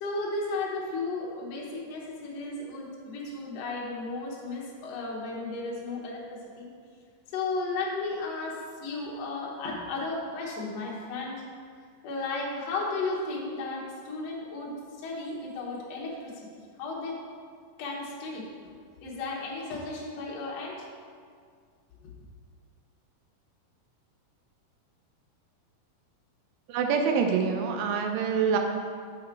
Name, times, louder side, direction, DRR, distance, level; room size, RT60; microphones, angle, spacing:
voice 1, 0.0-6.7 7.3-11.4 12.0-14.7 15.0-16.5 16.8-17.2 17.8-18.5 19.0-20.9 22.0-22.1, left 3 dB, 60° left, -3 dB, 1.8 m, -34 dB
voice 2, 26.7-28.6, right 6 dB, 80° right, 3 dB, 2.4 m, -25 dB
6.7 x 5.6 x 4.5 m, 2.1 s
omnidirectional pair, 4.2 m